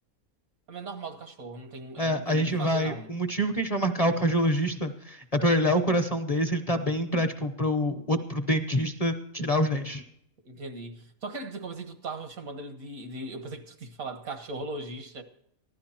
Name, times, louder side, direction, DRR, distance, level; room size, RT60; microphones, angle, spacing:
voice 1, 0.7-3.1 10.5-15.2, right 2 dB, 80° right, 1.9 m, -39 dB
voice 2, 2.0-10.0, equal, 30° left, 0.8 m, -26 dB
15.5 x 12.0 x 4.4 m
omnidirectional pair, 1.5 m